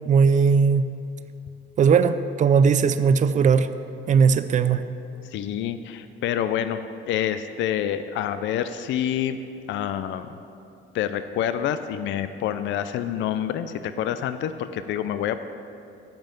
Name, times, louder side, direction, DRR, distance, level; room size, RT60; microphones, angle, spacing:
voice 1, 0.1-0.9 1.8-3.7 4.1-4.8, right 6 dB, 35° right, 12 dB, 0.4 m, -18 dB
voice 2, 5.2-9.4 9.7-10.4 10.9-15.4, left 10 dB, 65° left, 11 dB, 0.4 m, -27 dB
8.9 x 5.5 x 7.3 m, 2.6 s
cardioid pair, 140°, 21 cm